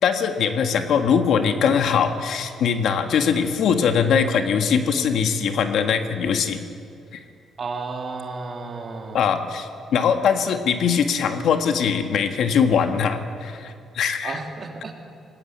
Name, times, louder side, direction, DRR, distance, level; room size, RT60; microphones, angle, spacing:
voice 1, 0.0-6.6 9.1-14.4, left 6 dB, 70° left, 6 dB, 1.6 m, -21 dB
voice 2, 7.6-9.4 14.2-15.0, right 3 dB, 45° right, 1 dB, 3.3 m, -33 dB
20.5 x 18.0 x 8.3 m, 2.4 s
cardioid pair, 90°, 0 cm